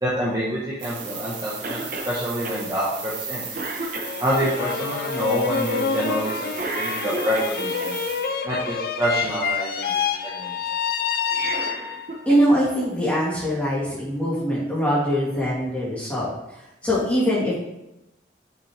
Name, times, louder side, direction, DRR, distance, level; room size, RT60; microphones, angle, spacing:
voice 1, 0.0-3.5 4.2-8.0 8.4-10.7, equal, 20° right, -7 dB, 1.1 m, -27 dB
sound 1, 0.8-8.3, right 5 dB, 90° right, 1.7 m, -36 dB
Cough, 1.6-2.1 2.4-2.6 3.1-3.3 3.5-4.5 6.5-7.9 11.1-12.5 12.8-12.9 14.0-14.1, right 2 dB, 50° right, 1.0 m, -32 dB
sound 2, 4.0-12.2, left 6 dB, 55° left, 0.5 m, -27 dB
voice 2, 12.3-16.3 16.8-17.5, equal, 5° left, -8 dB, 2.6 m, -22 dB
6.7 x 5.9 x 3.3 m, 0.90 s
head